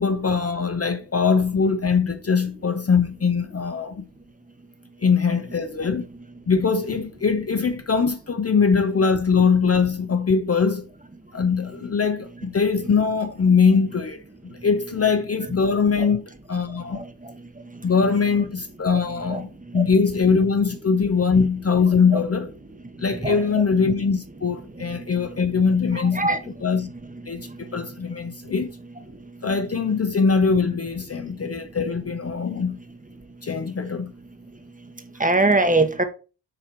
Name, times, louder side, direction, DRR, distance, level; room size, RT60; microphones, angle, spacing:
voice 1, 0.0-4.0 5.0-6.1 6.5-10.9 11.3-17.0 17.8-19.5 19.7-22.5 23.0-26.4 26.6-26.9 27.3-28.7 29.4-32.8 33.4-34.1, left 5 dB, 35° left, 0.7 m, -22 dB
voice 2, 12.8-13.1 15.0-15.5 16.0-16.2 16.9-17.3 18.0-18.4 18.9-20.3 21.3-21.4 22.1-22.2 23.1-23.5 24.8-27.8 35.2-36.0, right 2 dB, 20° right, 1.1 m, -27 dB
6.8 x 3.0 x 5.2 m
cardioid pair, 65°, 44 cm